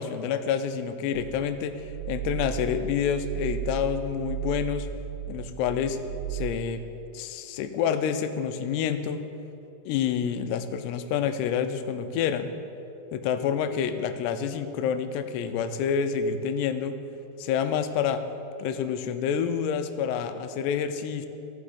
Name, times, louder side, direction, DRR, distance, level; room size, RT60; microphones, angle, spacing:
voice 1, 0.0-4.9 5.3-6.0 6.3-6.8 7.1-9.2 9.9-12.5 13.1-17.0 17.4-18.2 18.6-21.3, left 7 dB, 90° left, 9 dB, 2.7 m, -28 dB
sound 1, 1.1-6.5, right 11 dB, 80° right, 2.5 m, -35 dB
15.0 x 5.9 x 4.9 m, 2.9 s
omnidirectional pair, 4.7 m